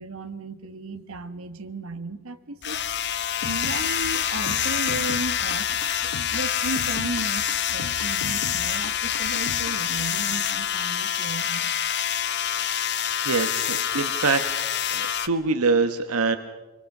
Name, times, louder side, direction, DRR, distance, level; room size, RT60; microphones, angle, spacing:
voice 1, 0.0-2.8 3.4-5.7 6.3-7.4 7.7-11.7 13.9-14.0, right 2 dB, 70° right, 8 dB, 1.6 m, -35 dB
sound 1, 2.6-15.3, left 9 dB, 55° left, 1.1 m, -26 dB
sound 2, 3.4-10.1, left 4 dB, 85° left, 1.1 m, -38 dB
voice 2, 13.2-16.4, right 4 dB, 90° right, 8 dB, 1.2 m, -25 dB
26.0 x 24.5 x 6.0 m, 1.2 s
head